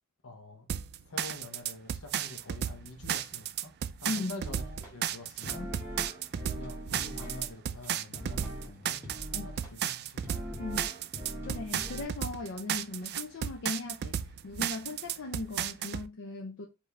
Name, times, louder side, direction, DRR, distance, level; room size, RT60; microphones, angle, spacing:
voice 1, 0.2-0.7 1.1-3.7 4.0-5.7 6.5-10.3, left 2 dB, 80° left, 0.9 m, -46 dB
sound 1, 0.7-16.1, right 9 dB, 50° right, 0.3 m, -34 dB
voice 2, 4.1-4.4 9.3-9.5 10.6-10.9 11.5-14.2 14.4-16.7, left 3 dB, 60° left, 0.5 m, -38 dB
sound 2, 4.4-4.9 5.4-7.5 7.8-7.9 8.1-8.7 9.0-9.7 10.2-12.0, equal, 10° right, 1.4 m, -41 dB
4.7 x 2.7 x 3.3 m
head